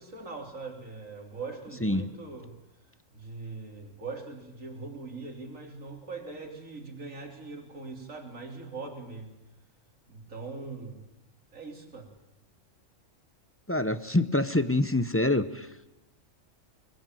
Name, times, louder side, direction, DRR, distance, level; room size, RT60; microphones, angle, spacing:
voice 1, 0.0-2.5 3.1-9.3 10.1-11.1 11.5-12.1, right 3 dB, 90° right, 3 dB, 4.1 m, -41 dB
voice 2, 13.7-15.9, left 2 dB, 10° left, 12 dB, 0.8 m, -26 dB
23.5 x 21.5 x 9.2 m, 0.94 s
omnidirectional pair, 1.3 m